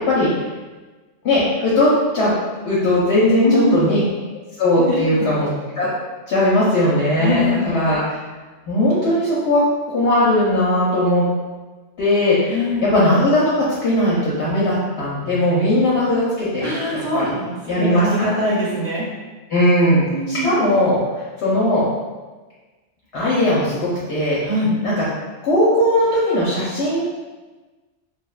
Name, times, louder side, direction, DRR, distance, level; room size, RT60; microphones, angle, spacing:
voice 1, 1.2-2.3 2.6-4.0 4.6-5.5 5.7-5.9 6.3-8.0 8.7-9.6 9.9-11.2 12.0-13.4 13.8-17.2 17.7-18.1 19.5-21.0 21.4-21.8 23.1-24.4 24.8-25.0 25.4-27.0, left 1 dB, 70° left, -7 dB, 0.8 m, -18 dB
voice 2, 3.4-3.8 4.9-5.1 7.2-7.7 12.5-12.9 16.6-19.0 20.1-20.5 24.4-24.7, left 1 dB, 35° right, -9 dB, 0.8 m, -22 dB
2.7 x 2.1 x 2.3 m, 1.3 s
omnidirectional pair, 1.2 m